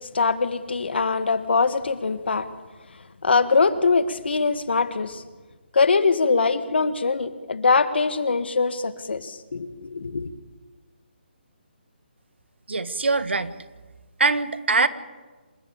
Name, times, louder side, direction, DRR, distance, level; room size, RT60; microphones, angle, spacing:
voice 1, 0.1-2.5 3.2-5.2 5.7-10.3, left 4 dB, 70° left, 12 dB, 1.8 m, -22 dB
voice 2, 12.7-13.5 14.2-14.9, right 3 dB, 85° right, 13 dB, 1.6 m, -22 dB
27.5 x 14.0 x 8.6 m, 1.3 s
hypercardioid pair, 160°, 6 cm